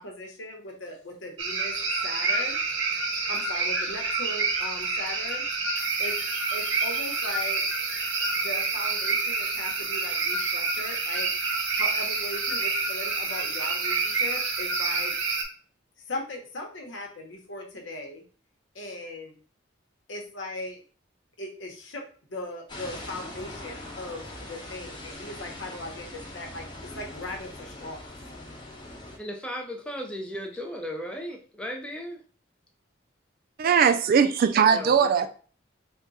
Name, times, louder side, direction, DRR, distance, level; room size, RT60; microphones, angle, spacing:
voice 1, 0.0-1.7 2.0-2.6 3.3-5.4 6.0-6.1 6.5-7.6 8.3-11.3 11.8-15.1 16.1-18.2 18.7-19.3 20.1-20.8 21.4-22.0 22.3-28.1, left 1 dB, 70° left, 1.0 m, -38 dB
sound 1, 1.4-15.4, right 4 dB, 75° right, 0.7 m, -28 dB
sound 2, 22.7-29.2, left 1 dB, 25° left, 0.9 m, -41 dB
voice 2, 29.2-32.2 34.7-35.3, equal, 5° left, 0.5 m, -36 dB
voice 3, 33.6-35.3, right 7 dB, 50° right, 0.3 m, -20 dB
3.6 x 2.3 x 4.0 m
head